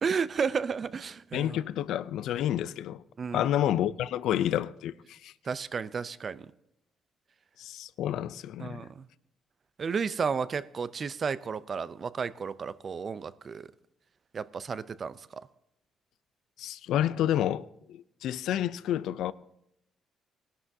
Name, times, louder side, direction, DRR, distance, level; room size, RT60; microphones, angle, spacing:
voice 1, 0.0-1.6 3.2-3.5 5.4-6.5 8.6-9.1 9.8-13.7 14.3-15.4, right 6 dB, 45° right, 0.5 m, -32 dB
voice 2, 1.3-3.0 3.3-5.3 7.6-8.8 16.6-19.3, left 11 dB, 80° left, 0.4 m, -29 dB
20.5 x 11.0 x 2.7 m
cardioid pair, 90°, 0 cm